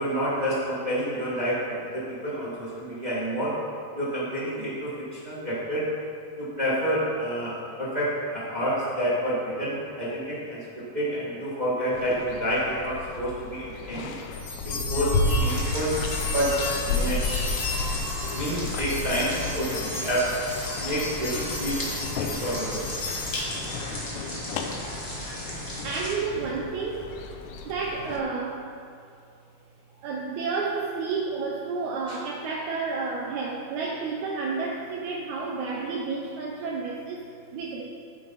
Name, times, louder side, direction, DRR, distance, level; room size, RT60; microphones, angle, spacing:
voice 1, 0.0-3.6 3.9-5.8 6.4-14.2 14.6-16.0 16.3-16.6 16.9-17.2 18.3-20.3 20.8-21.9 22.1-22.8 32.1-32.2, equal, 40° right, -8 dB, 0.6 m, -29 dB
sound 1, 11.9-28.2, left 4 dB, 80° left, 1.8 m, -35 dB
sound 2, 14.3-23.8, left 2 dB, 60° left, 2.5 m, -32 dB
sound 3, 15.4-26.1, equal, 10° left, 1.0 m, -36 dB
voice 2, 25.8-27.0 27.6-28.6 30.0-37.8, right 4 dB, 80° right, -1 dB, 1.7 m, -31 dB
9.7 x 9.3 x 4.1 m, 2.4 s
omnidirectional pair, 4.2 m